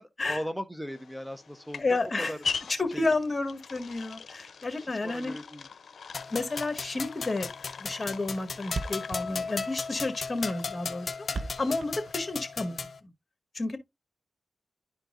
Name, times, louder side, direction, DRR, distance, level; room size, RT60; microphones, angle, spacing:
voice 1, 0.0-2.4 2.9-3.1 4.8-5.6 11.3-11.5, equal, 5° right, 0.9 m, -38 dB
sound 1, 0.9-12.1, left 5 dB, 80° left, 0.6 m, -42 dB
voice 2, 1.8-2.3 2.7-5.3 6.3-7.5 7.8-11.1 11.6-12.9 13.5-13.8, left 3 dB, 40° left, 1.7 m, -31 dB
sound 2, 6.1-13.0, left 4 dB, 60° left, 1.0 m, -36 dB
Thump thud, 7.3-7.5 7.8-7.9 8.1-8.2 8.4-8.5 8.7-12.7, right 3 dB, 65° right, 0.7 m, -38 dB
11.5 x 4.6 x 2.5 m
cardioid pair, 55°, 0 cm